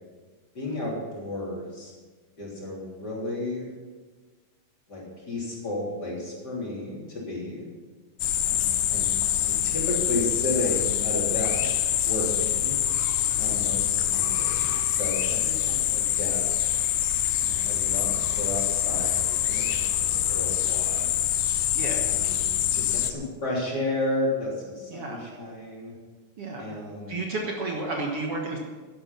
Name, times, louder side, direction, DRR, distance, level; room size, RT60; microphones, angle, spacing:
voice 1, 0.5-1.9 2.4-3.7 4.9-7.7 8.4-9.1 9.4-12.8 13.4-16.5 17.4-21.0 22.0-26.0 26.6-27.2, left 1 dB, 35° left, -4 dB, 3.9 m, -33 dB
sound 1, 8.2-23.1, left 11 dB, 85° left, 2.2 m, -25 dB
voice 2, 21.7-22.2 24.9-25.2 26.4-26.7 27.1-28.6, right 2 dB, 55° right, 0 dB, 2.1 m, -32 dB
11.5 x 11.5 x 5.8 m, 1.3 s
omnidirectional pair, 3.4 m